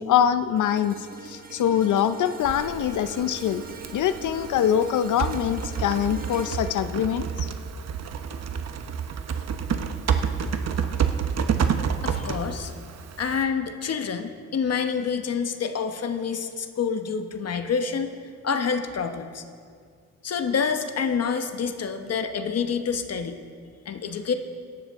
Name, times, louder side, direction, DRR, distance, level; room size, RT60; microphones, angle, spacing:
voice 1, 0.0-3.7 3.9-7.5, left 9 dB, 70° left, 12 dB, 0.6 m, -24 dB
sound 1, 0.6-8.9 9.4-9.6, right 3 dB, 30° right, 1.3 m, -42 dB
Typing, 2.4-13.4, right 7 dB, 55° right, 0.9 m, -29 dB
voice 2, 12.0-12.7 13.2-18.2 18.4-19.4 20.2-23.4 23.9-24.3, left 6 dB, 50° left, 7 dB, 1.0 m, -27 dB
16.5 x 12.0 x 3.6 m, 2.2 s
cardioid pair, 85°, 31 cm